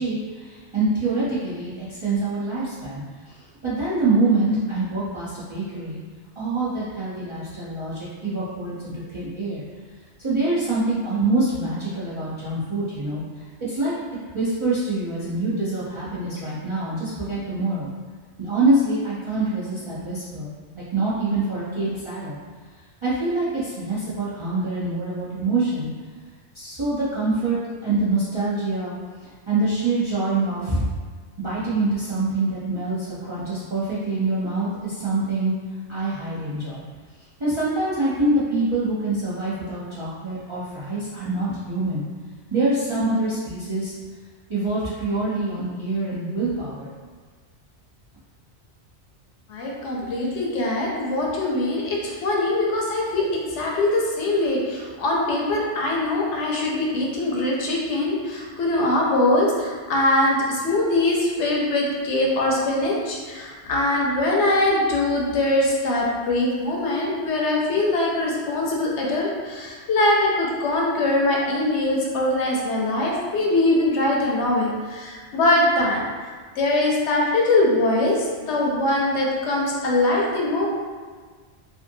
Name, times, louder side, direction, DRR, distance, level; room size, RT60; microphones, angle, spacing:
voice 1, 0.0-6.0 6.4-9.6 10.2-13.9 14.3-17.9 18.4-22.4 23.0-25.9 26.5-27.6 27.8-28.9 29.2-30.8 31.4-35.5 35.9-36.8 37.4-42.0 42.5-44.0 44.5-46.9, right 2 dB, 40° right, -11 dB, 0.4 m, -25 dB
voice 2, 49.5-53.3 53.5-76.0 76.6-80.7, left 2 dB, 75° left, -2 dB, 0.9 m, -22 dB
2.6 x 2.4 x 2.6 m, 1.5 s
omnidirectional pair, 1.2 m